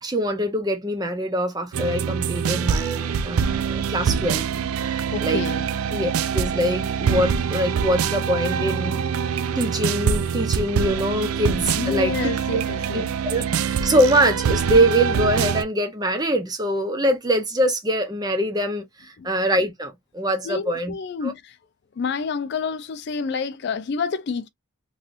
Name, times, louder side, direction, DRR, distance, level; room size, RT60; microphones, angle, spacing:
voice 1, 0.0-4.5 5.2-5.4 5.9-9.0 9.6-12.2 12.5-12.6 12.9-20.9 21.2-21.3, right 1 dB, 20° right, 0.6 m, -23 dB
sound 1, 1.7-15.6, right 7 dB, 80° right, 0.4 m, -24 dB
voice 2, 5.1-5.7 11.8-13.1 19.2-19.3 20.4-21.6 22.0-24.5, left 5 dB, 50° left, 0.3 m, -28 dB
3.1 x 2.9 x 2.4 m
head